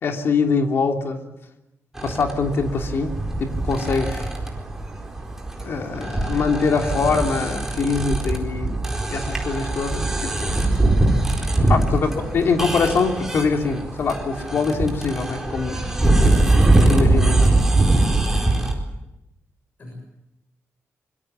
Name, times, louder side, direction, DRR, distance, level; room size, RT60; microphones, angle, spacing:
voice 1, 0.0-1.2 2.0-3.1 3.4-4.3 5.6-8.8 9.1-10.6 11.7-15.8 16.2-17.5, left 4 dB, 55° left, 3 dB, 3.1 m, -23 dB
sound 1, 2.0-18.7, right 2 dB, 10° right, 4.3 m, -22 dB
voice 2, 11.9-12.4 19.8-19.9, left 1 dB, 35° left, 2 dB, 7.0 m, -39 dB
25.0 x 24.5 x 7.3 m, 0.89 s
wide cardioid pair, 180°, 5 cm